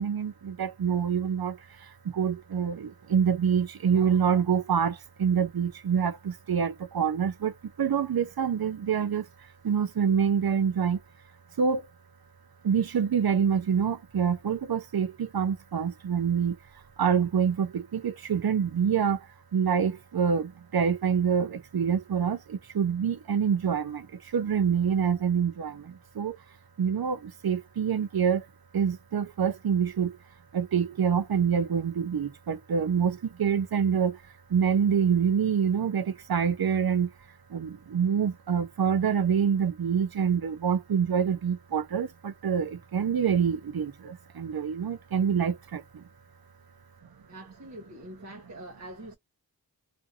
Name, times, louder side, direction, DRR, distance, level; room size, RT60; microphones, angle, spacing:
voice 1, 0.0-1.6 2.1-7.5 7.8-9.2 9.6-11.0 11.6-11.8 12.6-16.6 17.0-19.2 19.5-24.1 24.3-25.9 26.2-26.4 26.8-28.4 28.7-30.1 30.5-34.2 34.5-37.1 37.5-45.8, right 7 dB, 70° right, 0.5 m, -26 dB
voice 2, 47.3-49.2, right 1 dB, 45° right, 0.9 m, -44 dB
2.6 x 2.5 x 2.6 m
wide cardioid pair, 40°, 38 cm